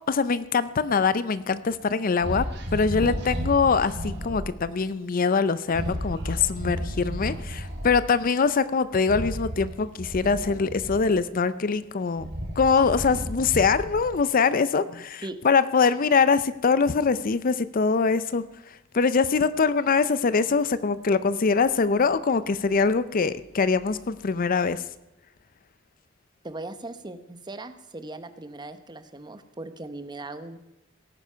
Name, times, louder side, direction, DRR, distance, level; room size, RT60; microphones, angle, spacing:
voice 1, 0.1-2.5 2.7-12.3 12.6-18.4 18.9-24.8, left 5 dB, 45° left, 15 dB, 0.5 m, -23 dB
sound 1, 2.2-4.5 5.7-8.0 9.0-11.3 11.9-14.3, equal, 60° right, 2.7 m, -33 dB
voice 2, 26.4-30.6, right 2 dB, 20° right, 10 dB, 0.9 m, -39 dB
17.5 x 9.6 x 5.7 m, 0.97 s
head